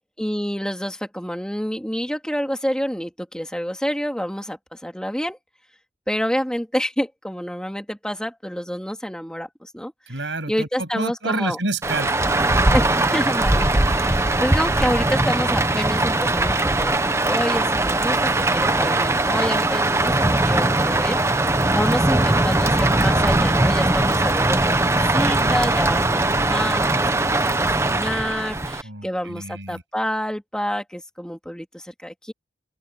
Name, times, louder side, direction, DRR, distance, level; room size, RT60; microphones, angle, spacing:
voice 1, 0.2-5.4 6.1-9.9 10.5-11.6 12.7-17.0 17.3-20.1 20.5-26.9 27.3-32.3, equal, 5° left, 2.3 m, -28 dB
voice 2, 10.1-12.6 28.8-29.8, right 2 dB, 85° right, 7.7 m, -29 dB
Rain, 11.8-28.8, right 2 dB, 15° right, 0.9 m, -20 dB
open air
head